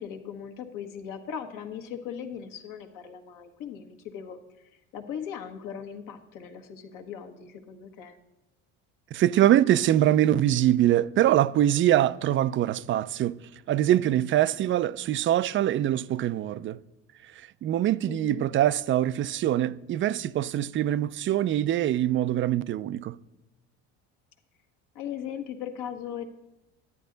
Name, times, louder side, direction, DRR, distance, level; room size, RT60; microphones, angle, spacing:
voice 1, 0.0-8.2 18.1-18.5 24.9-26.3, left 8 dB, 65° left, 1.4 m, -39 dB
voice 2, 9.1-13.4 13.7-16.8 17.6-23.2, right 12 dB, 35° right, 0.4 m, -23 dB
11.0 x 9.3 x 3.9 m
supercardioid pair, 85°, 35 cm